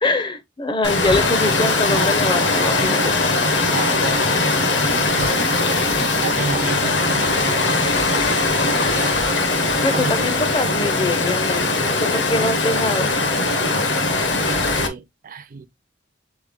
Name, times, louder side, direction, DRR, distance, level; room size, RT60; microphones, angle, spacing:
voice 1, 0.0-3.1 9.8-13.1, left 2 dB, 25° left, 0.5 m, -23 dB
Water, 0.8-14.9, left 3 dB, 65° left, 1.0 m, -20 dB
voice 2, 3.7-4.1 4.7-7.9 9.0-9.2 9.9-10.1 14.5-15.7, right 4 dB, 45° right, 0.5 m, -32 dB
4.0 x 3.5 x 3.5 m
head